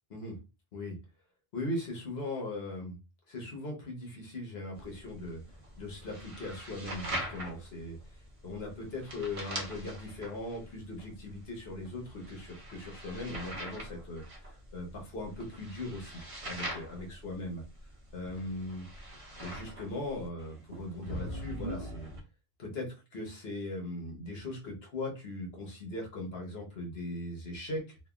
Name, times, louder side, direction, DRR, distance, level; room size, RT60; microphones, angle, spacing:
voice 1, 1.5-3.0 3.3-5.4 5.8-17.6 18.1-18.9 19.4-22.1 22.6-28.0, left 2 dB, 70° left, 0 dB, 1.2 m, -39 dB
sound 1, 4.7-22.2, equal, 40° right, 0.6 m, -43 dB
3.2 x 2.2 x 2.3 m, 0.28 s
omnidirectional pair, 1.1 m